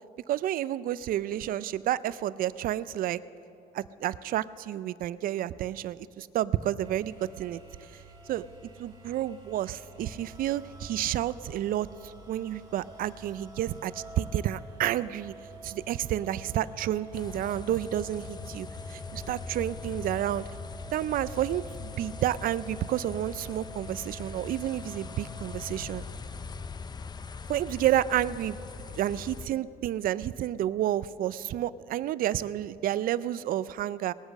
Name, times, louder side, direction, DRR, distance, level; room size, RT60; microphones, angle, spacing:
voice 1, 0.3-3.2 3.7-7.6 7.9-8.4 8.8-15.3 15.6-20.5 20.9-26.0 27.5-28.6 29.0-34.1, right 12 dB, 60° right, 18 dB, 0.4 m, -30 dB
sound 1, 6.8-26.4, equal, 20° right, 2.6 m, -48 dB
sound 2, 17.1-29.5, left 5 dB, 25° left, 0.5 m, -41 dB
19.5 x 8.1 x 6.4 m, 2.7 s
cardioid pair, 110°, 17 cm